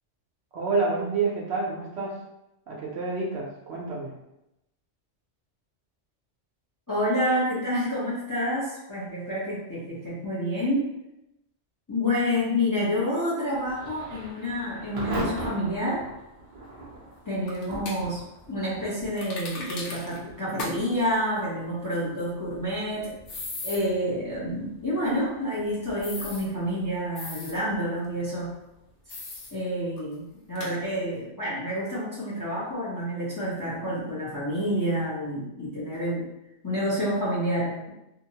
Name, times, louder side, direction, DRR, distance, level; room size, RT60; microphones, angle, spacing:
voice 1, 0.5-2.2 2.7-4.1, right 3 dB, 70° right, -3 dB, 0.9 m, -28 dB
voice 2, 6.9-10.9 11.9-16.0 17.3-18.2 18.5-23.1 23.6-28.6 29.5-36.3 36.6-37.9, equal, 20° left, -8 dB, 0.6 m, -28 dB
Thunder / Rain, 13.5-30.2, right 1 dB, 45° right, 0.6 m, -42 dB
sound 1, 17.5-18.0 19.2-20.2 20.6-20.7 21.0-21.1 23.3-23.8 26.0-26.4 27.2-27.5 29.1-29.5 30.0-30.1 30.6-30.7, left 2 dB, 80° left, 1.0 m, -36 dB
2.7 x 2.1 x 2.7 m, 0.88 s
omnidirectional pair, 1.2 m